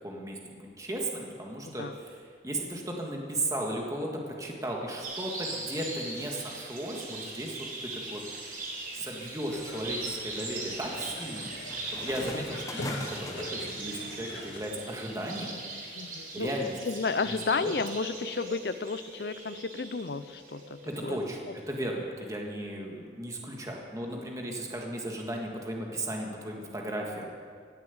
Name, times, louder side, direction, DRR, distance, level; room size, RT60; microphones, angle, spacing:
voice 1, 0.0-8.2 8.9-11.5 12.0-15.6 16.3-16.8 17.0-17.7 20.9-27.3, right 1 dB, 20° right, 0 dB, 1.7 m, -36 dB
sound 1, 5.0-21.6, right 2 dB, 50° right, 3.9 m, -40 dB
sound 2, 8.6-8.7 9.3-13.9, left 2 dB, 20° left, 1.0 m, -45 dB
sound 3, 9.5-14.7, left 1 dB, 85° left, 1.8 m, -42 dB
voice 2, 16.0-16.5 16.9-21.2, left 4 dB, 60° left, 14 dB, 0.6 m, -32 dB
16.5 x 7.6 x 8.2 m, 2.1 s
head